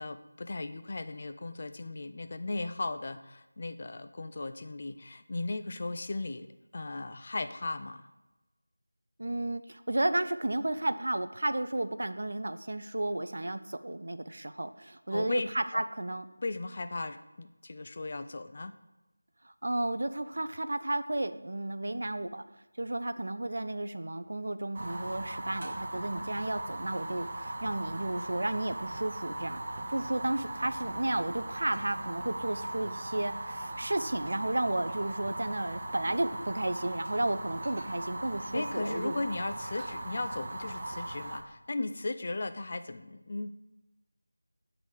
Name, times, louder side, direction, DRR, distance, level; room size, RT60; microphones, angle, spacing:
voice 1, 0.0-6.5 6.7-8.1 15.1-15.8 16.4-18.7 38.5-43.5, left 2 dB, 35° left, 9 dB, 0.4 m, -36 dB
voice 2, 9.2-16.2 19.4-22.4 22.8-29.6 29.9-39.2, right 1 dB, 55° right, 11 dB, 0.4 m, -33 dB
Fire, 24.7-41.4, right 1 dB, 35° right, 0.8 m, -39 dB
7.1 x 3.9 x 6.3 m, 1.1 s
figure-of-eight pair, 165°, 0 cm